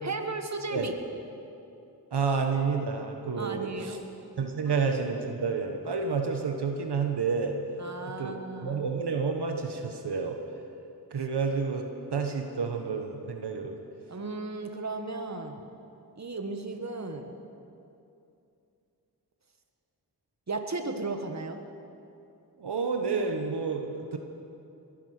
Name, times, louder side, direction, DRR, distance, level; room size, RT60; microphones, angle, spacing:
voice 1, 0.0-0.9 3.4-4.0 4.7-4.8 7.8-8.8 14.1-15.6 16.2-17.4 20.5-21.6, right 3 dB, 45° right, 5 dB, 1.6 m, -35 dB
voice 2, 2.1-4.0 4.4-7.5 8.0-8.4 8.6-10.4 11.1-11.8 12.1-13.8 22.6-24.2, right 5 dB, 85° right, 4 dB, 1.2 m, -29 dB
21.5 x 10.0 x 6.5 m, 2.7 s
cardioid pair, 50°, 39 cm